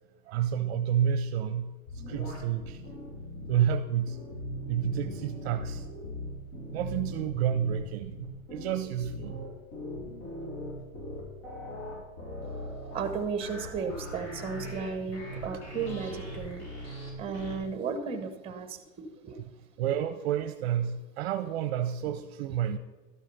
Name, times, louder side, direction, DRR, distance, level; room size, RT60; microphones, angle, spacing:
voice 1, 0.3-2.8 3.5-4.2 4.7-5.9 6.7-9.5 15.4-15.5 19.8-22.8, right 9 dB, 50° right, 10 dB, 0.6 m, -30 dB
sound 1, 1.9-3.6 4.1-17.6, equal, 60° left, 4.1 m, -40 dB
voice 2, 12.9-16.8 17.2-19.4, right 5 dB, 15° right, 9 dB, 1.0 m, -34 dB
12.5 x 7.4 x 5.5 m, 1.2 s
supercardioid pair, 145°, 40 cm